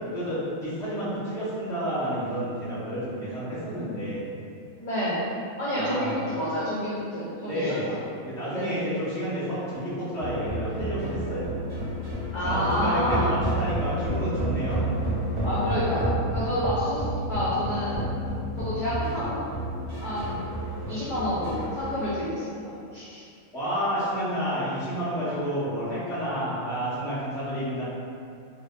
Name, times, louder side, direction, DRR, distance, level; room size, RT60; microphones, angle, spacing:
voice 1, 0.1-4.2 5.7-6.1 7.4-7.8 8.2-11.5 12.4-14.8 23.5-27.8, equal, 5° left, -13 dB, 0.6 m, -30 dB
voice 2, 4.8-5.2 5.6-7.8 8.5-8.8 12.3-13.3 15.4-18.0 18.6-19.4 20.0-20.5 20.9-23.2, equal, 65° left, -11 dB, 0.4 m, -29 dB
sound 1, 10.2-22.0, right 1 dB, 65° right, 1.1 m, -30 dB
2.6 x 2.2 x 2.3 m, 2.4 s
omnidirectional pair, 1.4 m